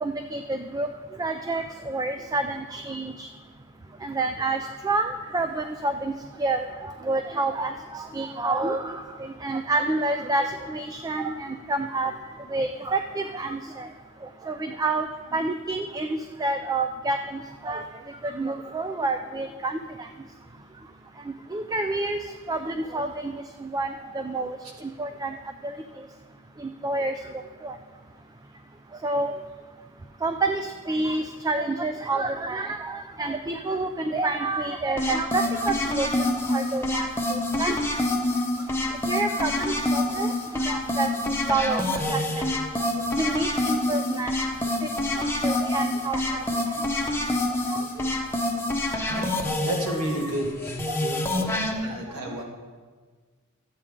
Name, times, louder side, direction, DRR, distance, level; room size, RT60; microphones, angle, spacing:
voice 1, 0.0-0.9 1.2-3.3 4.0-6.1 6.4-12.1 12.5-13.9 14.4-15.1 15.3-17.8 18.2-20.1 21.5-22.2 22.5-23.3 23.6-23.9 24.1-25.3 25.6-25.7 26.6-27.1 27.6-27.7 29.0-29.3 30.2-37.8 39.1-41.1 41.5-42.5 43.2-44.3 45.2-46.4 46.7-46.8 47.7-47.8 50.9-51.0 51.8-51.9, right 2 dB, 15° right, 7 dB, 0.3 m, -28 dB
sound 1, 35.0-51.7, left 1 dB, 10° left, 0.8 m, -27 dB
voice 2, 49.6-51.2 51.8-52.4, right 1 dB, 70° right, 0 dB, 1.7 m, -31 dB
13.5 x 8.3 x 3.6 m, 1.5 s
head